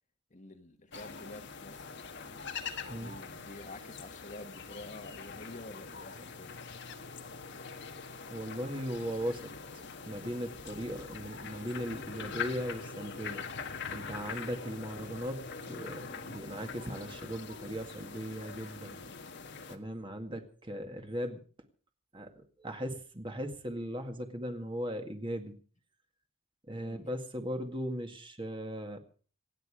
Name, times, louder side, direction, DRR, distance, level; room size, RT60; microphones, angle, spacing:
voice 1, 0.3-1.9 2.8-6.6 26.8-27.0, left 2 dB, 35° left, 6 dB, 1.6 m, -49 dB
sound 1, 0.9-19.8, left 5 dB, 55° left, 1.5 m, -43 dB
voice 2, 8.3-9.5 10.1-13.4 13.9-19.0 19.7-21.4 22.1-25.6 26.7-29.0, equal, 25° right, 5 dB, 2.0 m, -38 dB
27.0 x 9.6 x 5.0 m, 0.41 s
head